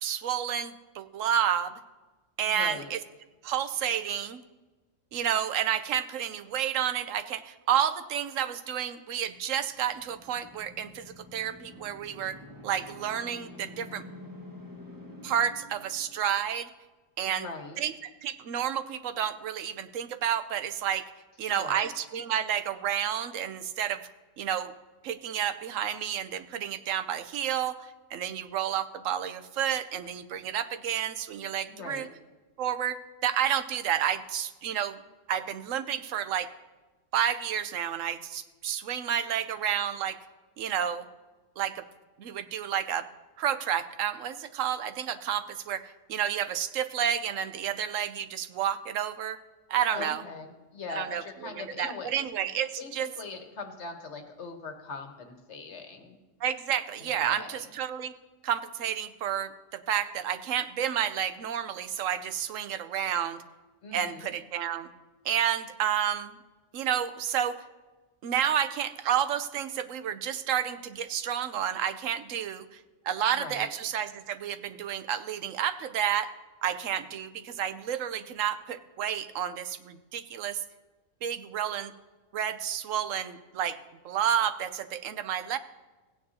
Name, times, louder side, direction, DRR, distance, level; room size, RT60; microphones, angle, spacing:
voice 1, 0.0-1.7 2.4-3.0 3.4-4.4 5.1-12.4 12.6-14.0 15.2-16.7 17.2-17.5 17.8-21.1 21.4-24.1 24.4-24.7 25.0-32.1 32.6-35.0 35.3-36.5 37.1-40.2 40.6-41.0 41.6-41.8 42.2-43.1 43.4-49.4 49.7-50.2 50.9-51.2 51.5-53.1 56.4-58.1 58.4-63.4 63.9-64.9 65.2-66.4 66.7-67.6 68.2-72.8 73.0-76.3 76.6-80.6 81.2-81.9 82.3-83.8 84.0-85.6, right 9 dB, 85° right, 11 dB, 1.0 m, -30 dB
voice 2, 2.4-2.9 17.2-17.8 21.5-21.9 31.7-32.1 49.9-52.5 52.8-56.2 57.0-57.7 63.8-64.3 73.3-73.7, left 4 dB, 65° left, 5 dB, 1.5 m, -41 dB
sound 1, 9.6-16.5, left 1 dB, 15° right, 1.4 m, -48 dB
16.0 x 9.3 x 2.7 m, 1.2 s
omnidirectional pair, 1.3 m